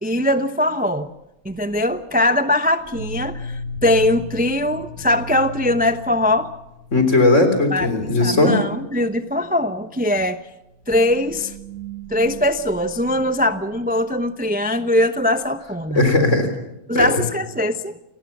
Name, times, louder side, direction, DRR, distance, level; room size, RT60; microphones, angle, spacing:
voice 1, 0.0-1.1 1.4-6.5 7.7-7.9 8.2-10.4 10.9-11.5 12.1-16.0 16.9-18.0, left 1 dB, 10° right, 10 dB, 0.6 m, -21 dB
sound 1, 1.5-1.9 2.8-7.3 7.7-7.8 8.1-8.4 8.7-9.0 9.6-9.7 10.7-13.9, left 1 dB, 55° right, 4.5 m, -36 dB
voice 2, 6.9-8.6 16.0-16.5 16.9-17.1, left 2 dB, 55° left, 7 dB, 4.0 m, -17 dB
28.5 x 19.0 x 7.3 m, 0.91 s
omnidirectional pair, 1.5 m